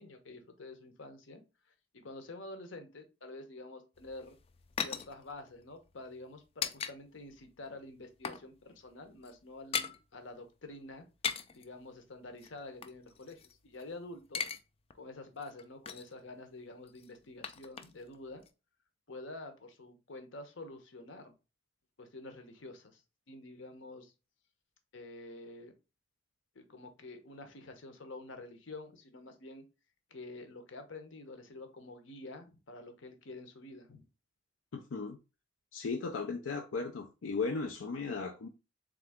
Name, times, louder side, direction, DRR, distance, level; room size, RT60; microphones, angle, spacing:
voice 1, 0.0-1.4 1.9-4.4 4.8-11.0 11.5-14.4 14.9-18.4 19.1-21.3 22.0-23.0 23.3-24.1 24.9-25.7 26.5-29.6 30.1-34.0, left 2 dB, 70° left, 0.9 m, -48 dB
sound 1, 4.0-7.0 7.2-7.4 7.8-8.5 8.7-8.9 9.2-10.0 11.0-11.7 12.4-13.8 14.1-14.6 14.9-15.0 15.4-16.2 16.9-18.2 18.4-18.5, left 7 dB, 30° left, 0.4 m, -39 dB
voice 2, 34.7-35.2 35.7-38.5, left 4 dB, 90° left, 0.5 m, -36 dB
3.7 x 3.4 x 3.5 m
head